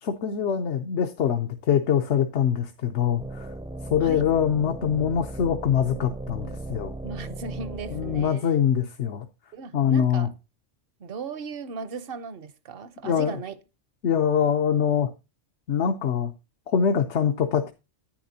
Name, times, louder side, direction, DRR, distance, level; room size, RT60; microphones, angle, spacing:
voice 1, 0.0-3.5 3.9-6.9 7.9-9.2 9.7-10.3 13.0-13.4 14.0-15.1 15.7-16.3 16.7-17.7, left 8 dB, 75° left, 1.1 m, -24 dB
sound 1, 3.2-8.3, right 2 dB, 5° right, 0.4 m, -37 dB
voice 2, 7.0-8.6 9.5-10.3 11.0-13.5, right 5 dB, 60° right, 0.9 m, -37 dB
10.0 x 9.5 x 2.7 m
omnidirectional pair, 1.2 m